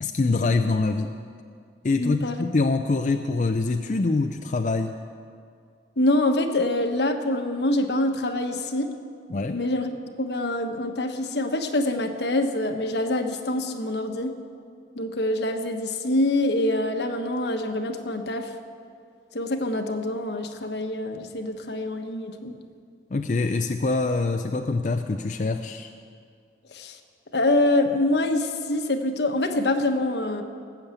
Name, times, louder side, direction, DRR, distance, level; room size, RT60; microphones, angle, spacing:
voice 1, 0.0-1.1 1.8-4.9 9.3-9.6 23.1-25.9, left 3 dB, 45° left, 6 dB, 0.4 m, -24 dB
voice 2, 1.9-2.4 6.0-8.9 9.5-9.9 10.2-14.3 15.0-18.5 19.3-22.5 26.7-27.0 27.3-30.4, left 1 dB, 75° left, 5 dB, 1.2 m, -25 dB
18.5 x 7.1 x 8.2 m, 2.2 s
head